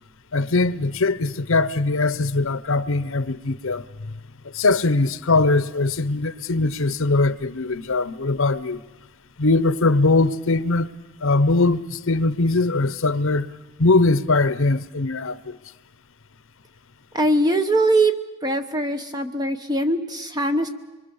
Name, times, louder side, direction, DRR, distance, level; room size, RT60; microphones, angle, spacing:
voice 1, 0.3-4.1 4.4-8.8 9.4-10.9 11.2-13.5 13.8-15.6, left 3 dB, 70° left, 0.9 m, -21 dB
voice 2, 17.1-18.1 18.4-20.7, right 1 dB, 20° right, 0.9 m, -21 dB
25.0 x 23.5 x 7.1 m
head